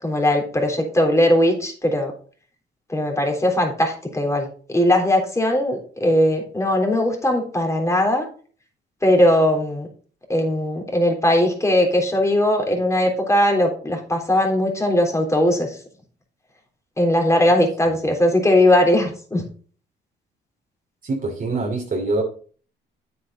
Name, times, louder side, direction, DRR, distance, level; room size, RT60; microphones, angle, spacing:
voice 1, 0.0-2.1 2.9-4.5 4.7-8.3 9.0-9.9 10.3-15.8 17.0-19.4, left 1 dB, 15° left, 1 dB, 3.5 m, -19 dB
voice 2, 21.0-22.2, right 2 dB, 45° right, 0 dB, 2.7 m, -24 dB
8.9 x 7.9 x 3.9 m, 0.43 s
cardioid pair, 90°, 20 cm